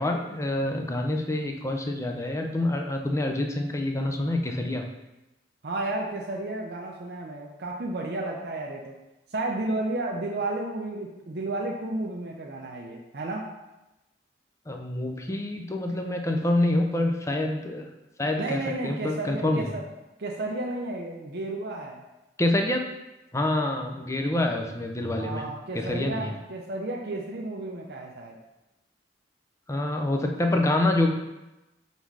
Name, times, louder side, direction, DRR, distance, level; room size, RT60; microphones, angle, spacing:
voice 1, 0.0-4.8 14.7-17.9 18.2-19.7 22.4-22.8 23.3-25.5 25.7-26.3 29.7-31.1, left 1 dB, 15° left, 3 dB, 0.5 m, -26 dB
voice 2, 5.6-9.0 9.3-13.5 18.4-19.8 20.2-22.0 25.2-28.4, right 2 dB, 55° right, -1 dB, 0.6 m, -32 dB
5.5 x 4.1 x 4.6 m, 0.99 s
head